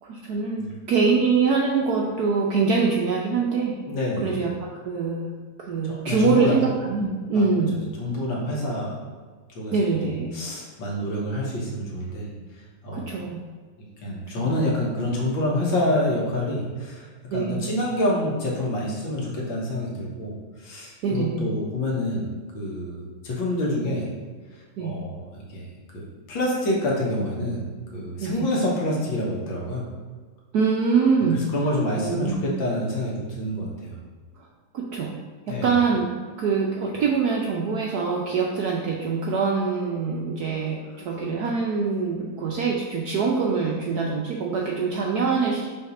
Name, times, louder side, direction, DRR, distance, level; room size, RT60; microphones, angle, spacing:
voice 1, 0.0-3.8 4.2-7.8 9.7-10.4 12.9-13.4 14.4-14.6 17.3-17.6 21.0-21.5 24.8-24.9 28.2-28.5 30.5-31.4 31.9-32.4 34.4-34.5 34.7-35.1 35.5-36.1 36.4-45.7, right 5 dB, 70° right, -2 dB, 0.9 m, -24 dB
voice 2, 3.9-4.3 5.8-6.6 7.3-7.5 8.0-9.0 9.6-12.3 12.8-13.1 14.0-24.1 24.8-25.7 25.9-27.6 27.9-29.9 31.3-34.0 35.5-35.7, left 1 dB, 65° left, -3 dB, 2.0 m, -27 dB
5.8 x 3.5 x 5.3 m, 1.5 s
omnidirectional pair, 2.3 m